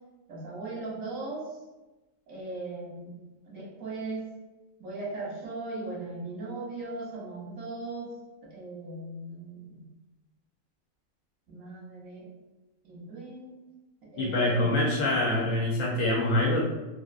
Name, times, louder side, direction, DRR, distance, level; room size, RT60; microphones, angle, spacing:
voice 1, 0.3-1.5 2.3-3.2 3.4-4.2 4.8-8.1 8.4-9.8 11.5-12.3 12.8-13.6 14.0-14.7, right 2 dB, 85° right, -5 dB, 1.4 m, -38 dB
voice 2, 14.2-16.6, left 1 dB, 75° left, -3 dB, 1.0 m, -25 dB
3.1 x 2.5 x 2.4 m, 1.1 s
omnidirectional pair, 1.4 m